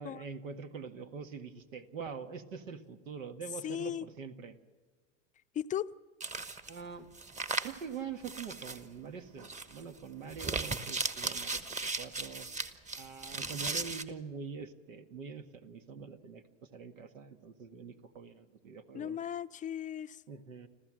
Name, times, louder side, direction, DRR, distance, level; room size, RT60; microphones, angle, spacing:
voice 1, 0.0-4.6 6.7-7.1 7.6-12.5 13.0-19.2 20.3-20.7, right 6 dB, 85° right, 1.7 m, -44 dB
voice 2, 3.6-4.1 5.5-5.9 18.9-20.2, left 10 dB, 20° left, 0.5 m, -36 dB
sound 1, 6.2-6.8 7.1-7.8 8.2-8.8 9.4-9.8 10.3-14.0, right 3 dB, 20° right, 1.2 m, -37 dB
26.5 x 15.0 x 7.5 m
hypercardioid pair, 100°, 38 cm